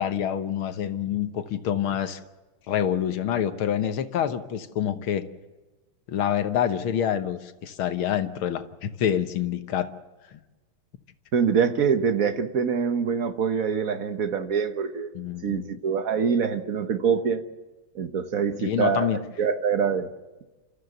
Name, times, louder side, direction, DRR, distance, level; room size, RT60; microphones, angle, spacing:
voice 1, 0.0-2.2 2.7-5.3 6.1-9.9 10.3-10.4 15.2-15.7 18.6-19.2, left 9 dB, 75° left, 10 dB, 1.9 m, -27 dB
voice 2, 11.3-15.1 15.4-17.4 17.9-20.1, right 6 dB, 50° right, 9 dB, 1.3 m, -25 dB
29.5 x 13.5 x 7.9 m, 1.2 s
omnidirectional pair, 2.3 m